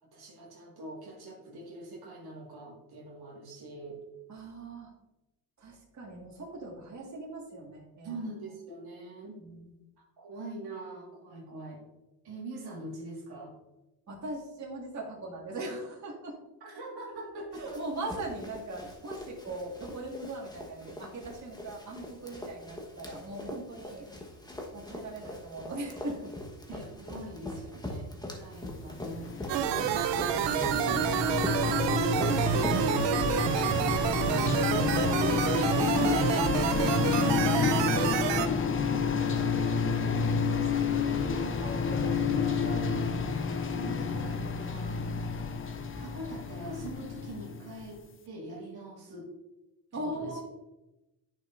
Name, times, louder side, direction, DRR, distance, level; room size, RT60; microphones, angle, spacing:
voice 1, 0.0-4.0 8.0-9.4 10.2-11.8 12.2-13.5 16.6-17.8 26.7-30.4 30.8-31.3 40.5-45.0 46.0-49.3 49.9-50.4, right 1 dB, 60° right, -2 dB, 1.9 m, -43 dB
voice 2, 4.3-4.9 5.6-8.2 9.4-9.7 14.1-16.4 17.6-24.1 24.7-26.3 27.5-27.6 30.6-31.1 33.7-34.3 34.6-39.5 49.9-50.4, right 2 dB, 40° right, -2 dB, 2.0 m, -40 dB
Run, 17.5-33.7, left 1 dB, 10° left, 1.3 m, -42 dB
sound 1, 28.9-47.9, left 5 dB, 30° left, 0.7 m, -29 dB
sound 2, 29.5-38.5, right 9 dB, 80° right, 0.6 m, -28 dB
10.0 x 5.5 x 2.6 m, 0.98 s
cardioid pair, 90°, 42 cm